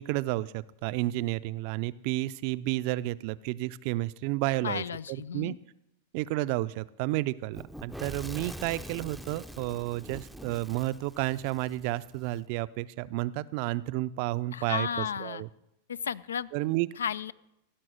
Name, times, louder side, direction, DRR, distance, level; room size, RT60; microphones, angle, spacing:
voice 1, 0.0-5.5 6.1-15.5 16.5-16.9, right 17 dB, 55° right, 17 dB, 0.4 m, -31 dB
voice 2, 4.6-5.6 14.5-15.4 15.9-16.5 17.0-17.3, left 7 dB, 85° left, 20 dB, 0.3 m, -33 dB
Fire / Explosion, 7.5-12.4, equal, ahead, 0.5 m, -44 dB
15.5 x 6.0 x 6.4 m, 0.84 s
hypercardioid pair, 105°, 0 cm